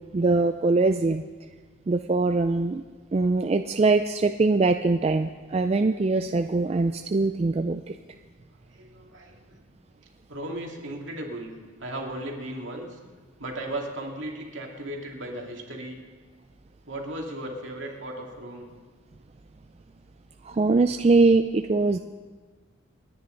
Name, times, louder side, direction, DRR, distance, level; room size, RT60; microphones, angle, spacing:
voice 1, 0.1-1.2 1.9-2.8 3.1-7.9 20.4-22.0, right 3 dB, 30° right, 7 dB, 0.4 m, -22 dB
voice 2, 8.6-9.6 10.0-13.0 13.4-16.0 16.9-18.7, right 1 dB, 65° right, 0 dB, 2.4 m, -36 dB
29.5 x 10.0 x 3.9 m, 1.4 s
head